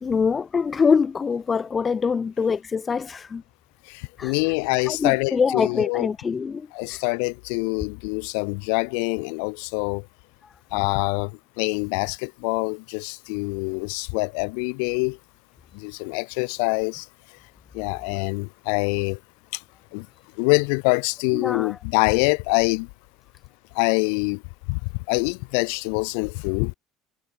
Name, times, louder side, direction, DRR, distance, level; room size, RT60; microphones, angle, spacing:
voice 1, 0.0-3.4 4.2-4.3 4.9-7.0 21.3-21.8, left 5 dB, 25° left, 1.6 m, -24 dB
voice 2, 3.8-6.1 6.7-10.1 10.7-15.2 15.7-17.1 17.7-19.2 19.5-19.6 19.9-20.1 20.4-22.9 23.7-24.4 24.7-26.7, left 40 dB or more, 60° left, 5.8 m, -25 dB
figure-of-eight pair, 60°, 0 cm